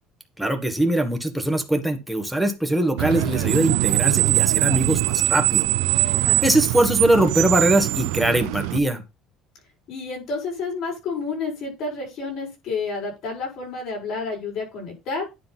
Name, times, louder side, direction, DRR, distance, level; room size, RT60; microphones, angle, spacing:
voice 1, 0.4-5.7 6.4-9.0, right 1 dB, ahead, 4 dB, 1.5 m, -21 dB
Screech, 3.0-8.8, right 20 dB, 85° right, 0.5 m, -22 dB
voice 2, 9.9-15.3, left 4 dB, 55° left, 0 dB, 6.1 m, -30 dB
9.8 x 3.7 x 5.7 m, 0.26 s
cardioid pair, 130°, 0 cm